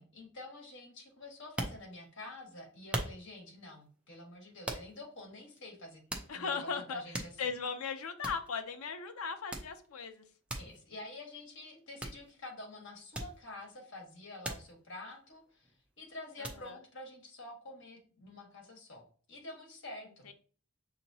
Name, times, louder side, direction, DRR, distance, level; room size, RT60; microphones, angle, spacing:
voice 1, 0.0-6.0 6.3-7.5 10.5-15.7 16.0-20.3, left 2 dB, 55° left, 0 dB, 1.4 m, -48 dB
sound 1, 1.4-2.3 2.9-3.5 4.7-5.1 5.6-5.7 6.1-6.6 6.9-7.7 8.0-8.1 8.2-8.5 9.5-9.9 10.5-10.8 12.0-12.3 13.1-13.7 14.4-14.7 15.1-15.9 16.4-16.7, right 1 dB, 5° right, 0.5 m, -40 dB
voice 2, 6.3-7.0 7.4-10.2 16.4-16.8 20.3-20.4, left 5 dB, 80° left, 8 dB, 0.6 m, -37 dB
6.6 x 2.9 x 2.7 m, 0.42 s
head